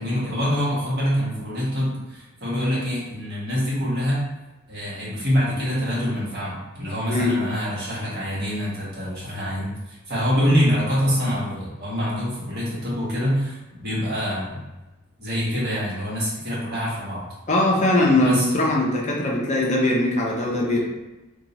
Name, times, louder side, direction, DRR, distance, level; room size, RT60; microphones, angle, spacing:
voice 1, 0.0-4.2 4.7-14.6 15.2-17.2 18.2-18.5, equal, 45° right, -8 dB, 1.3 m, -25 dB
voice 2, 17.5-20.8, left 1 dB, 35° left, -3 dB, 0.5 m, -21 dB
2.8 x 2.3 x 3.9 m, 1.1 s
head